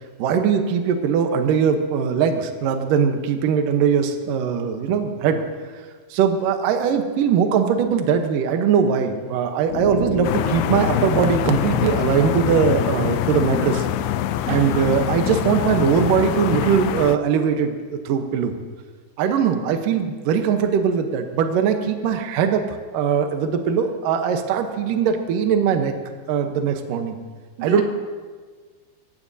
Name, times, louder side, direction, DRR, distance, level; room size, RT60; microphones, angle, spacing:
voice 1, 0.2-5.4 6.1-13.9 14.5-18.5 19.2-22.6 22.9-25.9 26.3-27.2 27.6-27.8, right 7 dB, 70° right, 5 dB, 2.3 m, -21 dB
sound 1, 9.7-17.8, left 4 dB, 65° left, 1.7 m, -32 dB
sound 2, 10.2-17.2, left 12 dB, 80° left, 2.3 m, -24 dB
voice 2, 14.5-15.0 19.2-19.3 27.6-27.8, right 5 dB, 85° right, 3 dB, 3.7 m, -31 dB
25.5 x 16.0 x 2.8 m, 1.5 s
omnidirectional pair, 4.9 m